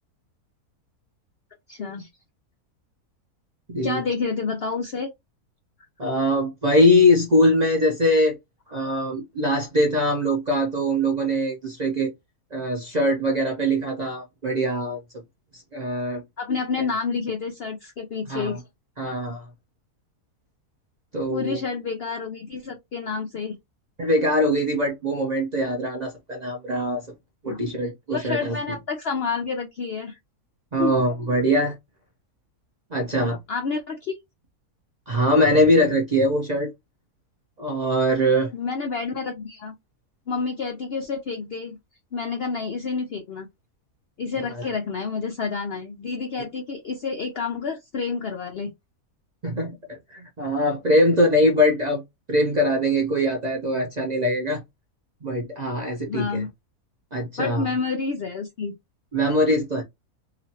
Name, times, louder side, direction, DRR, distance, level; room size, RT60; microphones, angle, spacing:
voice 1, 1.7-2.1 3.8-5.1 16.4-18.6 21.3-23.5 27.5-27.6 28.1-30.2 30.8-31.0 33.5-34.2 38.5-39.7 40.3-41.8 42.1-43.5 44.2-48.7 56.1-56.5 57.4-58.7, left 5 dB, 75° left, 0.5 m, -29 dB
voice 2, 3.7-4.0 6.0-8.4 8.7-12.1 12.5-15.0 15.5-16.2 18.3-18.6 19.0-19.5 21.1-21.6 24.0-27.1 27.4-28.6 30.7-31.8 32.9-33.4 35.1-36.7 37.6-38.5 44.6-44.7 49.4-52.0 52.3-54.6 55.2-56.4 57.1-57.7 59.1-59.8, equal, 50° right, 0.5 m, -22 dB
2.9 x 2.5 x 2.7 m
omnidirectional pair, 1.6 m